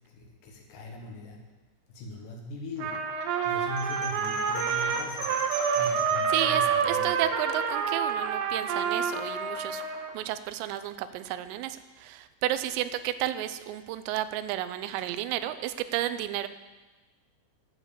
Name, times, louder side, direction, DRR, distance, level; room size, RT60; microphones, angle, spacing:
voice 1, 0.1-1.4 1.9-3.1 3.4-5.4 5.7-7.2, left 1 dB, 70° left, 1 dB, 2.1 m, -40 dB
Trumpet, 2.8-10.1, right 6 dB, 75° right, 3.0 m, -28 dB
sound 1, 3.8-6.2, right 1 dB, 20° left, 3.1 m, -40 dB
voice 2, 5.7-6.0 6.3-9.8 10.1-16.5, right 13 dB, 90° right, 12 dB, 3.3 m, -32 dB
9.7 x 8.2 x 7.0 m, 1.2 s
omnidirectional pair, 5.8 m